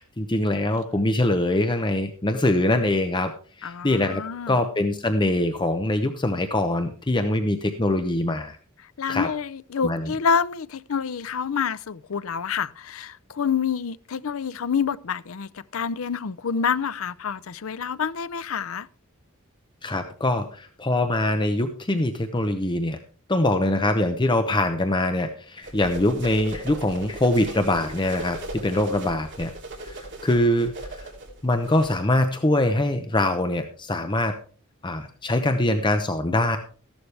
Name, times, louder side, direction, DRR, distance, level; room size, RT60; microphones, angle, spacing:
voice 1, 0.0-3.3 3.6-8.6 9.1-9.3 9.8-10.1 19.8-23.0 23.3-29.5 29.8-31.1 31.4-34.4 34.8-36.6, left 1 dB, 20° left, 0.8 m, -23 dB
voice 2, 3.6-4.6 9.0-18.9, left 6 dB, 75° left, 0.5 m, -27 dB
sound 1, 25.6-31.9, right 1 dB, 60° right, 3.2 m, -38 dB
14.5 x 11.5 x 3.4 m
head